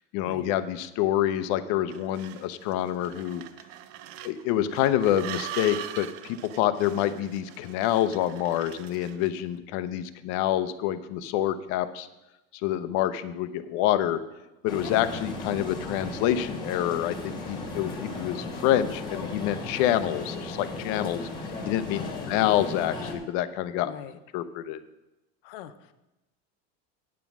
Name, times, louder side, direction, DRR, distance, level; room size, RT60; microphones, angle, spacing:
voice 1, 0.1-3.4 4.2-12.1 12.6-14.2 14.6-21.3 21.7-23.9 24.3-24.8, left 12 dB, 45° left, 12 dB, 0.6 m, -27 dB
sound 1, 1.9-9.4, right 12 dB, 40° right, 0.4 m, -42 dB
sound 2, 14.7-23.2, left 2 dB, 15° left, 1.4 m, -36 dB
voice 2, 21.9-22.3 23.8-24.2 25.4-25.9, left 11 dB, 70° left, 11 dB, 0.9 m, -42 dB
9.3 x 7.3 x 5.9 m, 0.98 s
cardioid pair, 175°, 30 cm